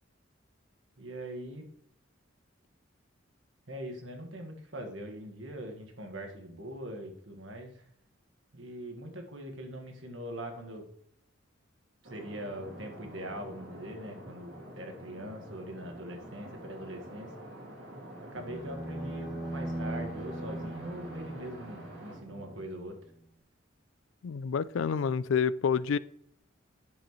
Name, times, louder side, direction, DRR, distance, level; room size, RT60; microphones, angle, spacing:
voice 1, 1.0-1.6 3.7-7.8 8.5-10.9 12.0-17.3 18.2-23.0, right 1 dB, 75° right, 3 dB, 1.7 m, -42 dB
sound 1, 12.0-22.6, equal, 55° right, 3.0 m, -47 dB
sound 2, 18.3-22.6, right 1 dB, ahead, 3.7 m, -39 dB
voice 2, 24.2-26.0, left 6 dB, 80° left, 18 dB, 0.4 m, -28 dB
10.5 x 7.1 x 3.1 m, 0.69 s
head